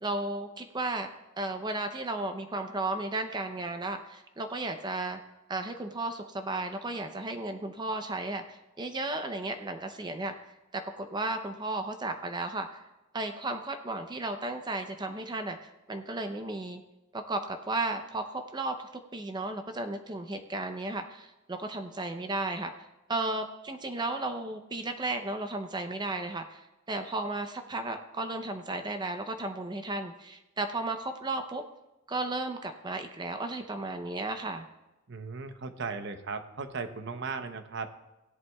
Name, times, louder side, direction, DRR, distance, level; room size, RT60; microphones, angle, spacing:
voice 1, 0.0-1.1 1.4-5.2 5.5-10.3 10.7-12.8 13.1-16.8 17.1-22.7 23.1-31.6 32.1-34.7, right 2 dB, 20° right, 6 dB, 0.6 m, -34 dB
voice 2, 35.1-37.9, right 4 dB, 60° right, 8 dB, 0.8 m, -37 dB
17.0 x 11.0 x 2.3 m, 1.0 s
head